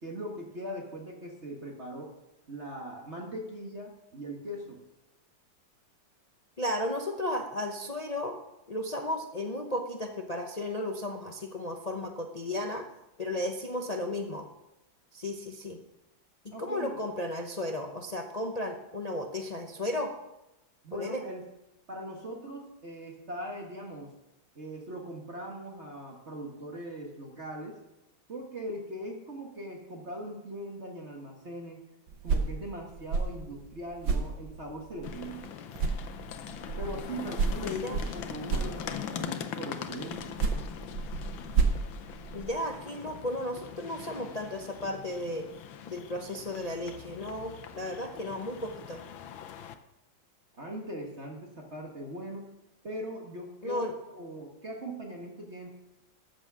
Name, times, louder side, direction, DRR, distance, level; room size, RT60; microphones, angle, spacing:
voice 1, 0.0-2.1 2.5-4.8 16.5-16.9 20.8-21.4 21.9-24.1 24.6-27.8 28.3-31.8 32.2-35.6 36.8-40.2 50.6-52.5 52.8-53.9 54.1-55.7, right 1 dB, 35° right, 0 dB, 1.8 m, -40 dB
voice 2, 6.6-8.3 8.7-12.8 13.2-14.5 15.1-15.8 16.4-20.1 20.9-21.2 37.6-38.0 42.3-45.5 45.9-49.0 53.6-53.9, left 1 dB, 40° left, 3 dB, 0.5 m, -34 dB
sound 1, 32.1-35.5 35.7-39.3 40.1-42.8, right 4 dB, 70° right, 1.8 m, -32 dB
sound 2, 35.0-49.7, left 8 dB, 80° left, 1.6 m, -42 dB
14.0 x 6.3 x 6.2 m, 0.93 s
omnidirectional pair, 2.1 m